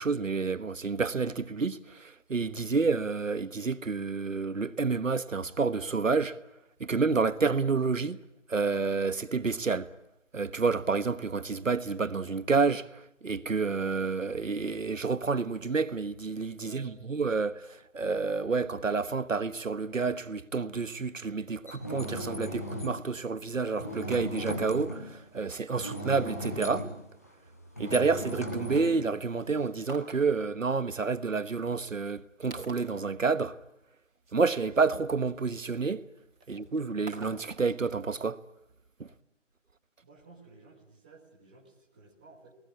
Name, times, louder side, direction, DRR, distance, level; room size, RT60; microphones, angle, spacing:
voice 1, 0.0-6.3 6.8-8.2 8.5-9.9 10.3-26.9 27.8-33.5 34.3-36.0 36.5-38.4 39.0-39.1, right 4 dB, 85° right, 1.4 m, -29 dB
voice 2, 16.5-16.9 40.0-42.6, right 3 dB, 5° right, 1.6 m, -55 dB
sound 1, 21.7-23.0 23.8-25.1 25.8-29.7, left 1 dB, 15° left, 1.2 m, -37 dB
sound 2, 29.7-30.3 30.8-30.9 31.5-31.6 32.1-32.2 32.4-33.1 34.3-35.9 36.4-37.8 38.1-38.2, right 3 dB, 40° right, 4.8 m, -48 dB
27.5 x 19.0 x 8.5 m
figure-of-eight pair, 175°, 38 cm